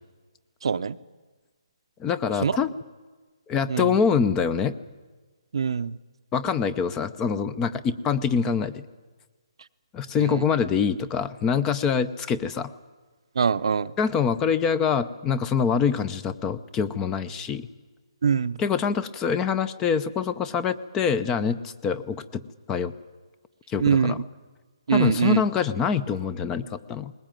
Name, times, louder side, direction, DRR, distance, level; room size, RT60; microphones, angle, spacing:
voice 1, 0.6-1.0 2.4-2.6 3.7-4.0 5.5-6.0 10.2-10.4 13.4-13.9 18.2-18.6 23.8-24.2 24.9-25.4, right 6 dB, 65° right, 12 dB, 0.7 m, -23 dB
voice 2, 2.0-2.7 3.5-4.8 6.3-8.9 9.9-12.7 14.0-17.7 18.6-22.4 22.7-22.9 23.7-24.2 24.9-27.1, left 6 dB, 15° left, 15 dB, 0.7 m, -25 dB
21.0 x 20.0 x 9.1 m, 1.3 s
hypercardioid pair, 155°, 3 cm